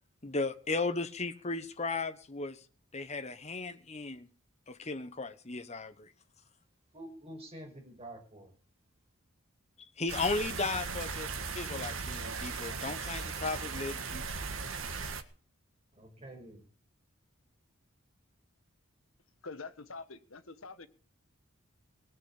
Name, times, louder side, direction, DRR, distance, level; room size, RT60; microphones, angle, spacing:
voice 1, 0.2-2.6 2.9-4.3 4.7-6.1 10.0-11.3 11.5-14.2, left 3 dB, 35° left, 1.3 m, -35 dB
voice 2, 6.9-8.5 15.9-16.7, right 1 dB, 30° right, 5.7 m, -48 dB
sound 1, 10.1-15.2, right 5 dB, 75° right, 1.6 m, -38 dB
voice 3, 19.4-20.9, left 4 dB, 75° left, 1.5 m, -45 dB
19.0 x 8.1 x 8.7 m
head